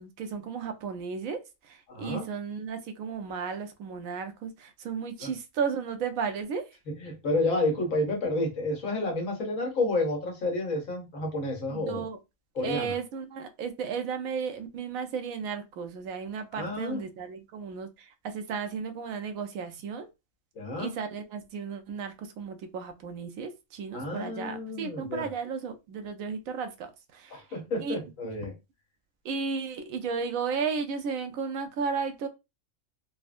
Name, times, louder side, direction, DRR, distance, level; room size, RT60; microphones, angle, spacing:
voice 1, 0.0-6.7 11.7-12.2 12.6-20.1 20.8-27.4 27.8-28.0 29.2-32.3, right 6 dB, 85° right, 1.0 m, -34 dB
voice 2, 1.9-2.2 5.2-5.3 6.9-12.1 12.6-12.9 16.5-17.0 20.6-20.9 23.9-25.3 27.3-28.5, left 2 dB, 80° left, 1.4 m, -30 dB
3.6 x 2.1 x 2.4 m
omnidirectional pair, 1.4 m